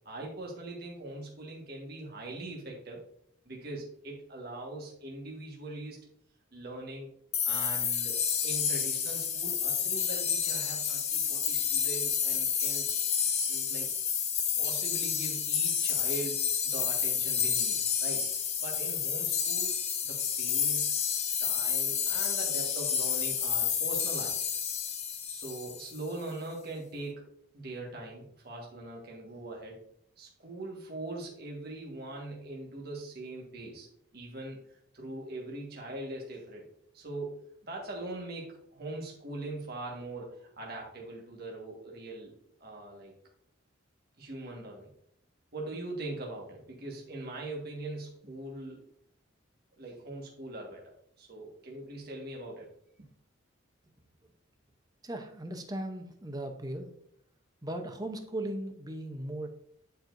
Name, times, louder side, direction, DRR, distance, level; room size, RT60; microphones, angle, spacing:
voice 1, 0.0-3.0 3.4-6.0 6.5-7.1 7.5-12.9 13.5-13.9 14.6-18.2 18.6-19.7 20.0-24.5 25.3-29.8 30.2-33.9 34.1-34.6 34.9-36.7 36.9-42.3 42.6-43.1 44.2-44.9 45.5-48.8 49.8-50.9 51.2-52.7 53.0-53.1, right 2 dB, 50° right, -1 dB, 1.6 m, -41 dB
sound 1, 7.3-26.0, left 7 dB, 35° left, 0.8 m, -30 dB
voice 2, 55.0-56.9 57.6-59.5, right 1 dB, 20° right, 5 dB, 0.7 m, -37 dB
10.0 x 4.6 x 2.6 m, 0.69 s
head